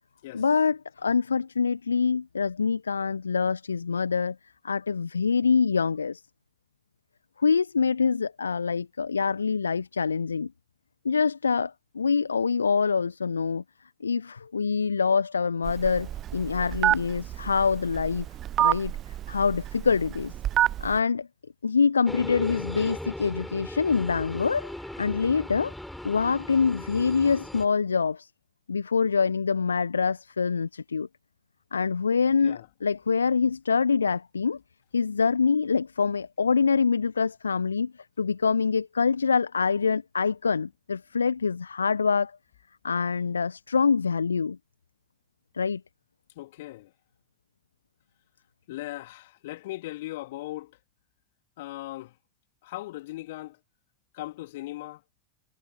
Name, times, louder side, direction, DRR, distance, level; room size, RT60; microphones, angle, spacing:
voice 1, 0.3-4.4 4.6-6.2 7.4-10.5 11.0-13.6 14.0-18.2 18.6-18.9 19.3-20.3 20.8-21.3 21.6-24.7 25.0-25.7 26.0-28.3 28.7-31.1 31.7-34.6 34.9-37.9 38.2-42.3 42.8-44.6 45.5-45.8, left 5 dB, 75° left, 1.5 m, -25 dB
Telephone, 15.7-21.0, right 12 dB, 30° right, 0.5 m, -28 dB
sound 1, 22.0-27.7, left 1 dB, ahead, 6.6 m, -38 dB
voice 2, 46.4-46.9 48.7-50.8 51.6-52.1 52.6-53.6 54.1-55.0, left 17 dB, 55° left, 3.4 m, -38 dB
figure-of-eight pair, 90°, 0 cm